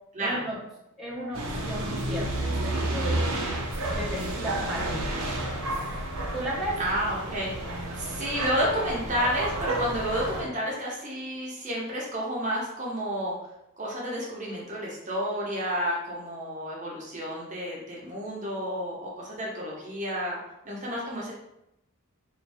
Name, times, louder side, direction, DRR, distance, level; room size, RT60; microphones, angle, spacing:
voice 1, 0.2-0.6 1.0-3.3 3.8-5.1 6.3-6.8, equal, ahead, -7 dB, 0.9 m, -34 dB
sound 1, 1.3-10.4, right 1 dB, 65° right, 0.8 m, -31 dB
voice 2, 6.8-7.7 8.0-13.4 13.8-20.4 20.6-21.3, equal, 35° right, -3 dB, 0.9 m, -30 dB
4.0 x 2.6 x 3.4 m, 0.85 s
head